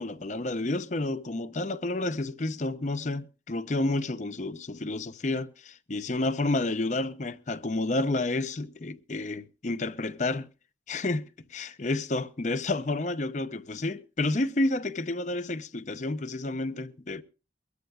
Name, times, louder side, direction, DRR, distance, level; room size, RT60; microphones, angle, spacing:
voice 1, 0.0-10.5 10.9-17.2, left 2 dB, 40° left, 0.7 m, -30 dB
23.0 x 13.0 x 2.3 m
head